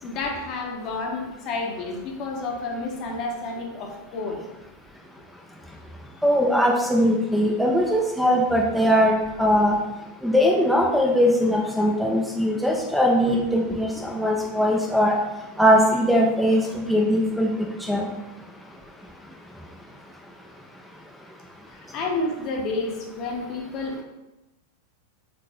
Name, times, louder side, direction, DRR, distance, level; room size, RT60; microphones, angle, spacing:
voice 1, 0.0-4.4 13.3-14.1 21.7-24.0, left 3 dB, 35° left, 1 dB, 0.9 m, -30 dB
voice 2, 6.2-9.8 10.2-15.1 15.6-17.5 17.8-18.1, equal, ahead, -1 dB, 0.5 m, -20 dB
4.5 x 3.6 x 3.2 m, 0.99 s
figure-of-eight pair, 90°, 0 cm